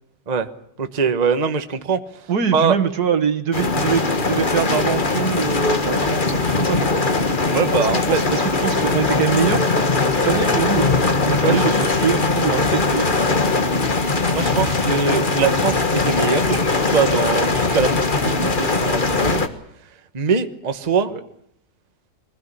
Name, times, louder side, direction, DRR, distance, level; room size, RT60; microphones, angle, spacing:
voice 1, 0.8-2.3 2.5-2.8 7.5-8.2 11.4-11.7 14.3-16.5 16.9-17.9 18.2-19.5 20.1-21.1, right 5 dB, 25° right, 9 dB, 1.1 m, -22 dB
voice 2, 2.3-7.1 7.8-9.8 10.1-13.1 16.5-16.6 18.4-18.5 21.1-21.2, right 7 dB, 65° right, 7 dB, 2.0 m, -24 dB
sound 1, 3.5-19.5, left 3 dB, 30° left, 1.6 m, -20 dB
24.0 x 17.0 x 10.0 m, 0.71 s
omnidirectional pair, 1.8 m